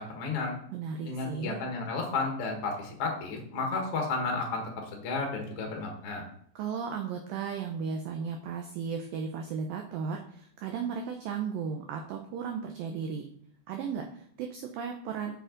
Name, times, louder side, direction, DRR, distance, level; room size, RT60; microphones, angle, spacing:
voice 1, 0.0-0.5 1.0-6.2, left 3 dB, 65° left, 1 dB, 1.4 m, -32 dB
voice 2, 0.7-1.6 6.6-13.3 13.7-15.4, right 6 dB, 85° right, 3 dB, 2.0 m, -35 dB
7.6 x 6.6 x 3.9 m, 0.63 s
omnidirectional pair, 5.0 m